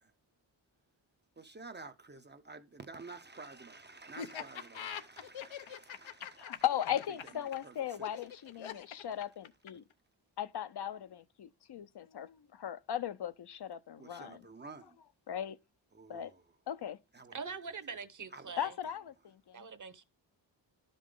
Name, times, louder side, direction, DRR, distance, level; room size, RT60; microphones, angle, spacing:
voice 1, 1.4-6.6 7.6-7.7 14.0-14.9 15.9-16.3 17.1-17.3 18.3-18.6, right 3 dB, 25° right, 0.6 m, -50 dB
Laughter, 4.2-9.9, left 8 dB, 85° left, 0.9 m, -43 dB
voice 2, 6.4-9.8 10.4-14.5 14.8-15.6 16.1-16.3 16.7-17.0 18.6-19.7, left 10 dB, 60° left, 0.7 m, -38 dB
voice 3, 17.3-18.8 19.5-20.0, right 5 dB, 40° right, 0.9 m, -43 dB
12.0 x 5.3 x 3.8 m
wide cardioid pair, 100°, 45 cm